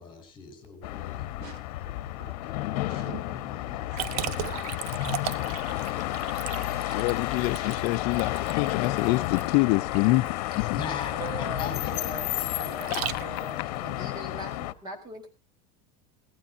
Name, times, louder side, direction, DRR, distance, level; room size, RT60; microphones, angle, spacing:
voice 1, 0.0-1.3 2.8-4.6 10.5-14.0, left 6 dB, 25° left, 5.3 m, -40 dB
sound 1, 0.8-14.7, left 16 dB, 70° left, 1.1 m, -31 dB
voice 2, 1.4-1.9 2.2-3.4 3.9-4.2, right 7 dB, 50° right, 2.7 m, -47 dB
Liquid, 4.0-13.6, right 12 dB, 70° right, 0.8 m, -37 dB
voice 3, 6.9-10.3 10.7-10.8 12.9-13.0, left 20 dB, 50° left, 0.6 m, -25 dB
voice 4, 11.1-15.3, right 1 dB, 20° right, 4.4 m, -41 dB
19.0 x 15.0 x 2.7 m
supercardioid pair, 160°, 20 cm